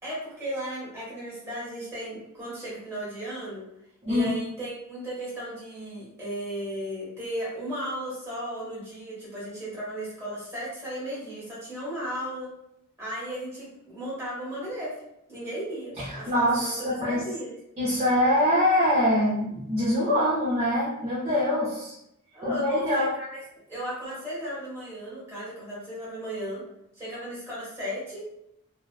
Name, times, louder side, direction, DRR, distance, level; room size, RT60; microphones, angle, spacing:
voice 1, 0.0-3.7 4.1-12.5 13.0-14.9 15.3-16.7 17.0-17.5 22.3-23.4 23.7-26.6 27.0-28.2, equal, 15° right, -8 dB, 1.2 m, -35 dB
voice 2, 16.0-17.2 17.8-21.9 22.4-23.1, left 1 dB, 30° right, -8 dB, 0.5 m, -24 dB
2.7 x 2.0 x 2.2 m, 0.80 s
head